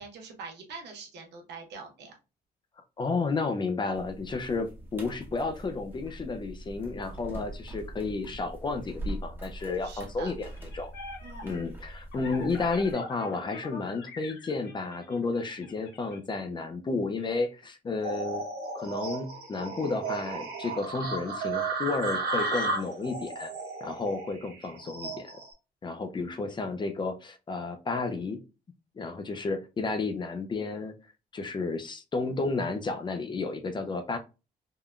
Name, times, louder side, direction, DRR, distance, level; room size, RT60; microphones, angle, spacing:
voice 1, 0.0-2.2 9.8-10.3 11.2-11.5, right 4 dB, 90° right, 2 dB, 0.9 m, -44 dB
voice 2, 3.0-10.5 10.7-10.9 11.4-18.5 18.7-23.5 23.8-25.3 25.8-28.4 29.0-30.9 31.3-34.2, left 3 dB, 30° left, 7 dB, 0.4 m, -32 dB
sound 1, 3.9-12.9, right 1 dB, 10° right, 0.8 m, -42 dB
sound 2, 10.4-16.2, left 4 dB, 85° left, 0.9 m, -45 dB
sound 3, 18.0-25.5, right 3 dB, 65° right, 1.2 m, -34 dB
3.6 x 2.1 x 2.3 m, 0.30 s
cardioid pair, 115°, 17 cm